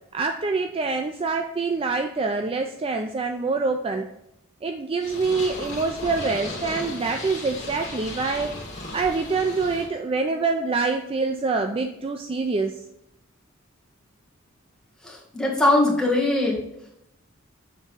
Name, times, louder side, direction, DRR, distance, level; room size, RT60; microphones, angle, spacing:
voice 1, 0.1-4.1 4.6-8.5 8.9-12.8, right 4 dB, 25° right, 5 dB, 0.3 m, -25 dB
Purr, 5.0-9.9, left 2 dB, 35° left, 2.1 m, -36 dB
voice 2, 15.0-16.6, left 2 dB, 5° left, -4 dB, 1.6 m, -21 dB
7.2 x 3.5 x 5.5 m, 0.84 s
head